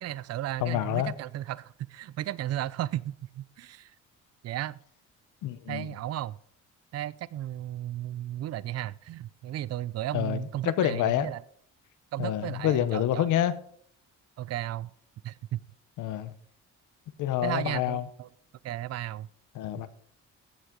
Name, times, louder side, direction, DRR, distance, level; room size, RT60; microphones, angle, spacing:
voice 1, 0.0-3.9 4.4-4.8 5.7-6.4 6.9-11.4 12.1-13.3 14.4-14.9 15.2-15.6 17.4-18.3 18.6-19.3, right 13 dB, 55° right, 0.5 m, -34 dB
voice 2, 0.6-1.1 5.4-5.9 10.1-10.4 10.6-11.3 12.2-13.5 16.0-16.3 17.2-18.0 19.5-19.9, left 12 dB, 85° left, 0.9 m, -27 dB
14.5 x 8.0 x 3.8 m
cardioid pair, 90°, 30 cm